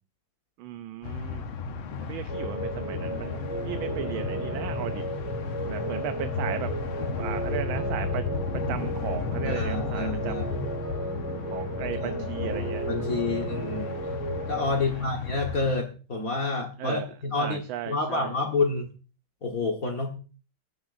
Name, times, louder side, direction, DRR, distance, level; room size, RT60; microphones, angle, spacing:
voice 1, 0.6-1.4 2.1-5.0 5.6-6.7 7.2-8.2 8.7-10.5 11.5-12.9 14.8-15.1 16.8-17.1 17.3-18.3, right 11 dB, 80° right, 9 dB, 1.5 m, -36 dB
sound 1, 1.0-15.7, left 4 dB, 80° left, 1.8 m, -34 dB
sound 2, 2.3-14.8, right 1 dB, 5° right, 1.5 m, -34 dB
voice 2, 9.4-10.6 12.0-12.1 12.8-14.0 14.5-18.9 19.4-20.1, left 3 dB, 45° left, 1 dB, 1.8 m, -29 dB
16.5 x 10.0 x 2.6 m, 0.36 s
omnidirectional pair, 2.2 m